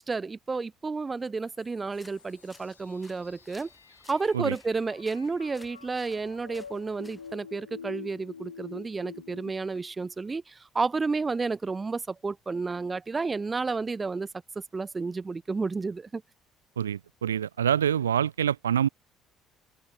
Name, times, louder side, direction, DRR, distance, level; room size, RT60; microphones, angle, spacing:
voice 1, 0.0-3.7 4.1-14.3 14.7-16.2, right 4 dB, 25° right, 0.5 m, -31 dB
sound 1, 1.4-9.5, left 6 dB, 80° left, 1.0 m, -48 dB
sound 2, 1.8-7.4, left 2 dB, 10° left, 6.7 m, -57 dB
voice 2, 16.8-18.9, right 9 dB, 75° right, 0.3 m, -26 dB
figure-of-eight pair, 55°, 0 cm